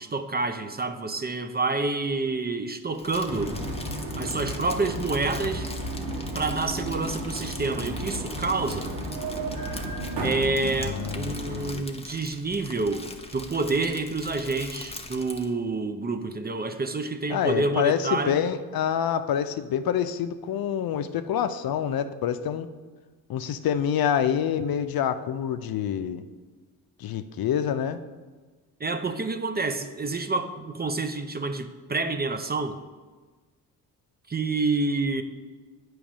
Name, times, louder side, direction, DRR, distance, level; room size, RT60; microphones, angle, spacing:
voice 1, 0.0-3.6 4.2-5.7 6.3-8.9 10.2-18.4 28.8-32.8 34.3-35.2, right 3 dB, 25° right, 8 dB, 0.6 m, -28 dB
Crumpling crinkling, 2.9-15.5, left 2 dB, 15° left, 0.8 m, -42 dB
sound 1, 3.3-11.7, right 1 dB, 70° right, 1.6 m, -33 dB
voice 2, 10.8-11.9 17.3-22.7 23.3-26.2 27.0-28.0, left 9 dB, 60° left, 10 dB, 0.6 m, -27 dB
8.5 x 3.2 x 6.0 m, 1.3 s
supercardioid pair, 60°, 41 cm